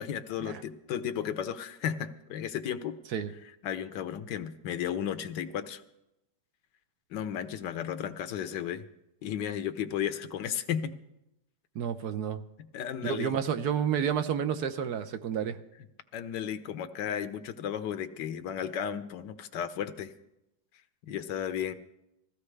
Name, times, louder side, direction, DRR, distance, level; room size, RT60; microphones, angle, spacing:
voice 1, 0.0-3.0 3.6-5.8 7.1-8.8 9.2-10.9 12.6-13.4 16.1-20.1 21.0-21.7, left 9 dB, 80° left, 11 dB, 1.4 m, -34 dB
voice 2, 11.7-12.4 13.0-15.6, right 8 dB, 70° right, 10 dB, 1.2 m, -30 dB
20.5 x 15.0 x 3.3 m, 0.87 s
omnidirectional pair, 1.9 m